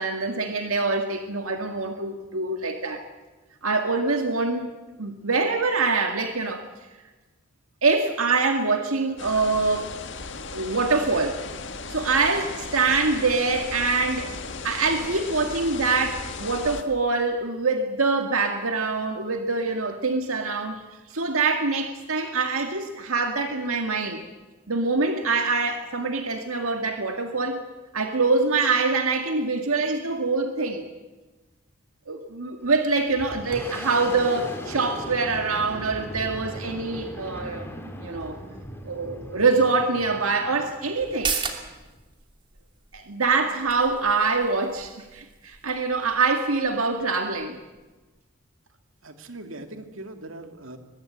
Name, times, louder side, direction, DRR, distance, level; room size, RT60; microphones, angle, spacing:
voice 1, 0.0-3.0 3.6-4.7 5.0-6.6 7.8-9.9 10.5-11.4 11.9-14.3 14.6-20.8 21.1-24.2 24.7-27.6 27.9-30.8 32.1-37.7 38.0-38.4 38.8-41.3 42.9-47.6, right 3 dB, 90° right, 5 dB, 1.9 m, -24 dB
sound 1, 9.2-16.8, left 4 dB, 60° left, 1.9 m, -36 dB
Boom, 32.6-42.1, equal, 10° left, 3.5 m, -38 dB
sound 2, 41.0-48.2 48.5-48.6, right 5 dB, 25° right, 2.7 m, -37 dB
voice 2, 49.0-50.8, right 2 dB, 70° right, 6 dB, 2.5 m, -40 dB
22.5 x 21.5 x 8.7 m, 1.2 s
head